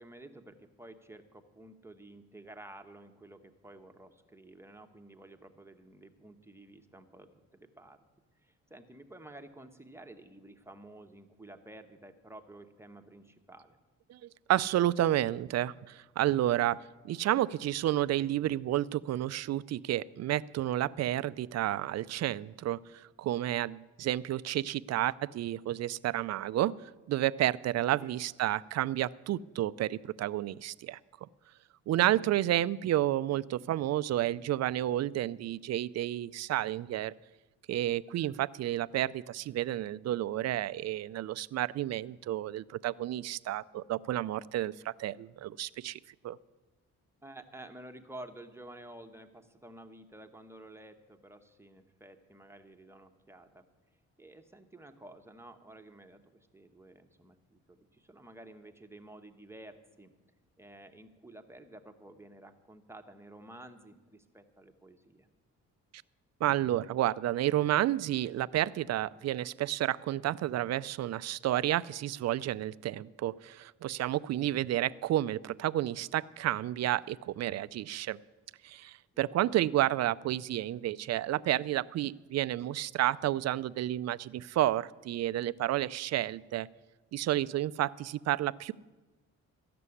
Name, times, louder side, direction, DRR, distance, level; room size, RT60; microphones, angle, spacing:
voice 1, 0.0-8.0 8.4-13.8 27.9-28.2 47.2-53.7 54.2-60.1 60.6-65.3 79.1-79.3, right 1 dB, 10° right, 6 dB, 1.1 m, -52 dB
voice 2, 14.1-26.8 27.1-31.0 31.9-37.1 37.7-46.4 66.4-78.2 78.6-86.7 87.1-88.7, right 13 dB, 60° right, 17 dB, 0.4 m, -31 dB
13.5 x 6.9 x 9.8 m, 1.2 s
cardioid pair, 90°, 30 cm